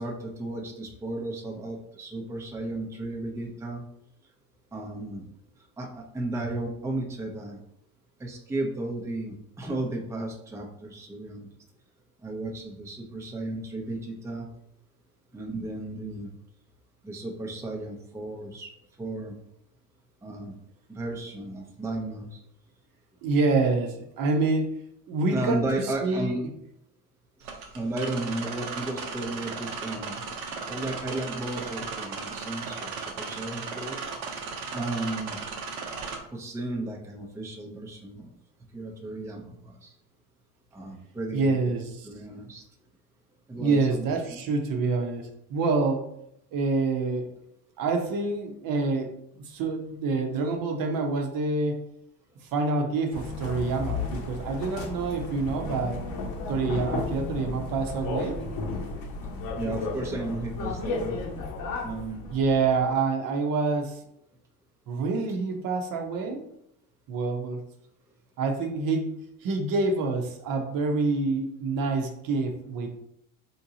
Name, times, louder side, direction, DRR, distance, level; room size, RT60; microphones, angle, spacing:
voice 1, 0.0-3.8 4.7-5.2 5.8-7.6 8.2-11.5 12.2-14.5 15.3-16.3 17.0-18.7 19.0-19.3 20.2-20.6 20.9-22.4 25.3-26.4 27.5-30.2 30.7-34.0 34.7-35.4 36.3-38.3 38.7-39.9 40.7-41.5 42.0-42.6 43.5-44.4 59.6-61.2 61.8-62.3, right 2 dB, 5° right, 0 dB, 0.6 m, -34 dB
voice 2, 23.2-24.8 25.1-26.4 41.3-42.1 43.5-46.1 46.5-47.3 47.8-49.1 49.4-51.8 52.5-56.0 56.5-58.4 62.3-64.0 64.9-66.5 67.1-67.6 68.4-73.0, right 3 dB, 50° right, 3 dB, 0.8 m, -27 dB
sound 1, 27.4-36.2, right 5 dB, 90° right, 0.8 m, -36 dB
sound 2, 53.1-62.9, left 3 dB, 50° left, 0.9 m, -34 dB
3.6 x 2.7 x 2.8 m, 0.76 s
supercardioid pair, 95°, 42 cm